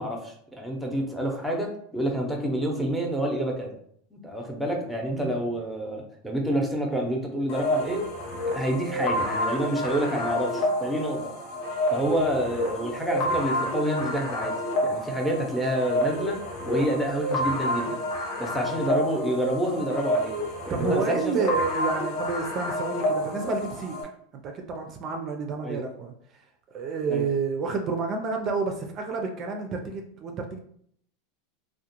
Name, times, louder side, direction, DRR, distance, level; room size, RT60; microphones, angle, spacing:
voice 1, 0.0-3.8 4.1-8.0 8.4-11.3 11.9-14.6 14.8-16.4 16.7-18.0 18.4-20.4 20.7-21.3 25.6-25.8 27.1-27.3, right 1 dB, ahead, 0 dB, 0.7 m, -28 dB
sound 1, 7.5-24.0, left 1 dB, 60° left, 0.8 m, -29 dB
voice 2, 20.7-24.0 24.4-26.1 26.7-30.6, right 4 dB, 40° right, 3 dB, 0.4 m, -30 dB
2.3 x 2.1 x 2.9 m, 0.65 s
supercardioid pair, 115°, 0 cm